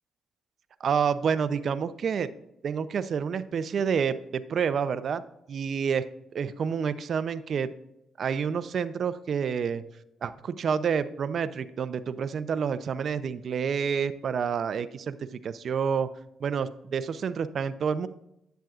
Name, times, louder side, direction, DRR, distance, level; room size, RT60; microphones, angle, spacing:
voice 1, 0.8-2.3 2.6-5.2 5.5-6.0 6.3-7.7 8.2-9.8 10.2-16.1 16.4-18.1, right 6 dB, 55° right, 13 dB, 0.5 m, -28 dB
10.5 x 7.9 x 2.5 m, 0.82 s
cardioid pair, 90°, 0 cm